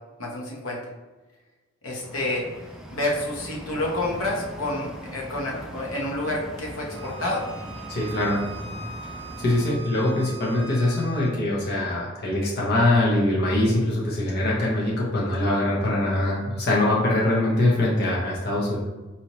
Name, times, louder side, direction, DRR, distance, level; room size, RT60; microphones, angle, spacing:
voice 1, 0.2-0.8 1.8-2.4 2.9-7.4, left 1 dB, 75° left, -2 dB, 1.0 m, -29 dB
sound 1, 2.0-9.8, equal, 5° right, 0.3 m, -40 dB
Bowed string instrument, 6.9-11.3, right 5 dB, 15° left, 1.1 m, -41 dB
voice 2, 7.9-8.4 9.4-18.8, left 1 dB, 50° left, -5 dB, 0.8 m, -23 dB
4.2 x 2.8 x 3.0 m, 1.2 s
head